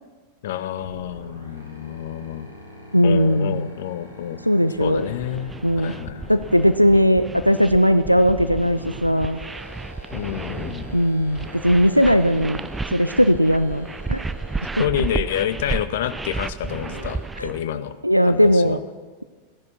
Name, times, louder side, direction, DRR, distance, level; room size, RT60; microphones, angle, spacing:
voice 1, 0.4-2.5 3.0-4.4 4.8-6.3 10.1-10.9 14.8-17.9 18.2-18.8, left 11 dB, 55° left, 13 dB, 0.8 m, -28 dB
sound 1, 0.8-6.9 8.6-14.9 16.6-17.2, equal, 85° right, 4.7 m, -42 dB
voice 2, 2.9-3.7 4.4-5.1 5.6-5.9 6.3-9.4 10.9-12.6 12.9-14.2 17.4-17.5 18.0-18.8, equal, 90° left, 11 dB, 0.4 m, -18 dB
sound 2, 4.8-17.6, right 3 dB, 10° right, 0.3 m, -33 dB
16.0 x 10.5 x 6.2 m, 1.4 s
figure-of-eight pair, 90°, 0 cm